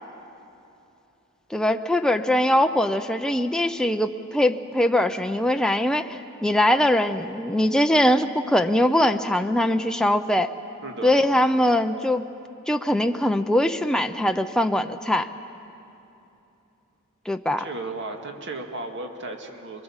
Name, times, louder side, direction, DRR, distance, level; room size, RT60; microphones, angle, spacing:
voice 1, 1.5-10.5 11.0-12.3 12.7-15.3 17.3-17.6, left 1 dB, 5° left, 6 dB, 0.5 m, -22 dB
voice 2, 10.8-11.4 17.6-19.8, right 2 dB, 55° right, 3 dB, 2.0 m, -35 dB
23.0 x 22.0 x 7.2 m, 2.8 s
head